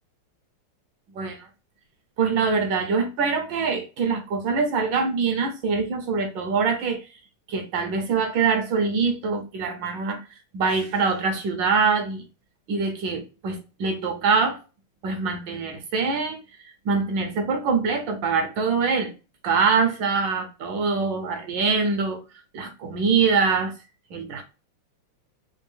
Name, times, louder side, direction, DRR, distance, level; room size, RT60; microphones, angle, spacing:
voice 1, 2.2-7.1 7.5-10.2 10.5-12.2 12.7-14.6 15.0-19.1 19.4-22.2 22.5-23.7 24.1-24.4, right 5 dB, 70° right, 1.2 m, -24 dB
4.5 x 2.3 x 3.0 m
omnidirectional pair, 2.4 m